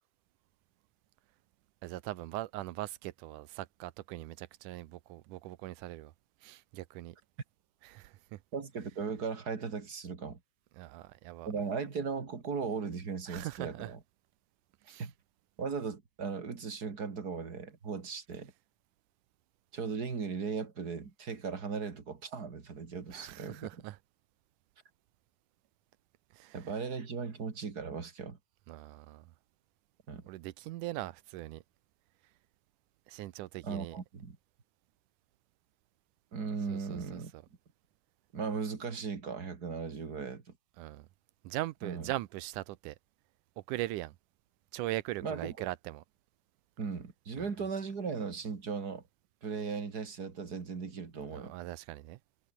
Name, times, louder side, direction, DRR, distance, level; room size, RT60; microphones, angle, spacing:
voice 1, 1.8-6.1 6.4-7.2 7.8-8.4 10.8-11.5 13.3-13.9 14.9-15.1 23.1-24.0 26.3-26.7 28.7-29.3 30.3-31.6 33.1-34.0 36.7-37.4 40.8-41.1 41.4-43.0 43.6-44.2 44.7-46.0 47.4-47.5 51.3-52.2, right 16 dB, 75° right, 2.0 m, -40 dB
voice 2, 8.5-10.4 11.5-14.0 15.0-15.1 15.6-18.5 19.7-23.7 26.5-28.4 30.1-30.2 33.6-34.4 36.3-37.3 38.3-40.4 41.8-42.1 45.2-45.7 46.8-49.0 49.4-51.5, right 5 dB, 30° right, 2.4 m, -37 dB
omnidirectional pair, 4.2 m